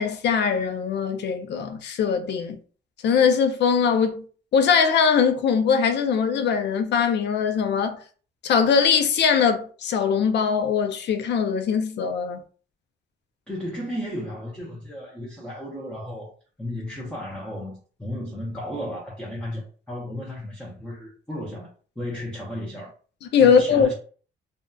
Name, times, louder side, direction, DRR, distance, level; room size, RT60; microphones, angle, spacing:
voice 1, 0.0-2.6 3.0-4.2 4.5-8.0 8.4-12.4 23.3-23.9, left 6 dB, 60° left, 0.5 m, -21 dB
voice 2, 13.5-16.3 16.6-21.7 22.0-22.9 23.4-23.9, left 1 dB, 5° left, 0.7 m, -34 dB
2.6 x 2.2 x 2.3 m
cardioid pair, 90°, 20 cm